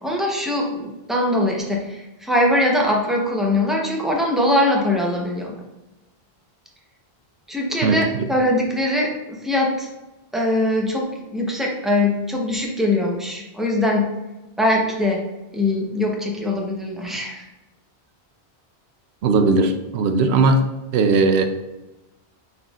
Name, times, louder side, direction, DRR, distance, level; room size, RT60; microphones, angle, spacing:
voice 1, 0.0-5.5 7.5-9.9 10.3-14.1 14.6-15.2 15.5-17.4, left 1 dB, ahead, -1 dB, 0.6 m, -22 dB
voice 2, 7.8-8.3 19.2-20.7 20.9-21.4, right 3 dB, 80° right, 7 dB, 0.8 m, -18 dB
5.7 x 3.5 x 2.4 m, 1.0 s
omnidirectional pair, 1.1 m